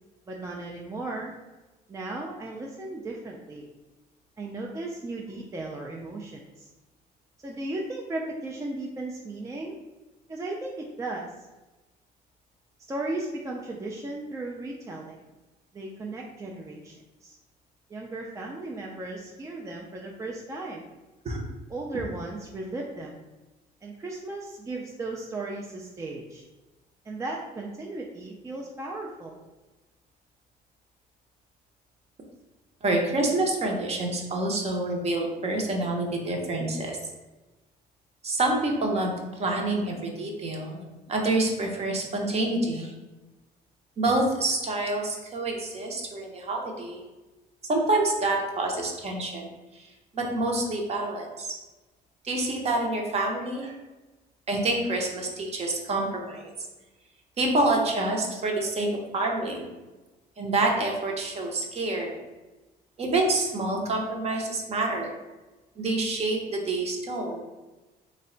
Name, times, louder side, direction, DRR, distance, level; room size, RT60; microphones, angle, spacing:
voice 1, 0.3-1.3 1.9-3.7 4.4-6.7 7.4-9.8 10.3-11.5 12.9-15.2 15.7-16.9 17.2-17.4 17.9-20.8 21.7-23.2 23.8-26.4 27.0-29.4, right 2 dB, 20° right, -1 dB, 0.3 m, -36 dB
voice 2, 32.8-37.0 38.2-40.8 41.1-42.9 44.0-47.0 47.7-49.5 50.1-51.5 52.2-53.7 54.5-56.5 57.4-58.9 59.1-59.7 60.4-62.2 63.0-65.1 65.8-67.4, right 2 dB, 40° right, 1 dB, 0.7 m, -27 dB
3.2 x 2.1 x 3.8 m, 1.1 s
cardioid pair, 110°, 17 cm